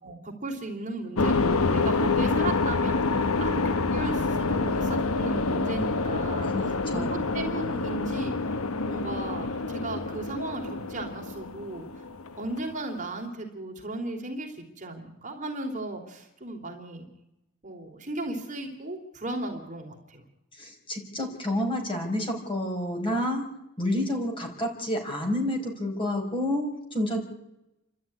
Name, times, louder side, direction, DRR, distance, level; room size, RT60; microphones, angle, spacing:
voice 1, 0.0-8.6 8.8-11.9 12.4-17.1 17.6-20.2, right 2 dB, 35° right, 2 dB, 3.1 m, -36 dB
sound 1, 1.2-12.6, left 3 dB, 75° left, 1.1 m, -27 dB
voice 2, 6.5-7.1 20.6-27.2, left 1 dB, 25° left, 2 dB, 5.0 m, -29 dB
29.0 x 12.5 x 9.8 m, 0.90 s
head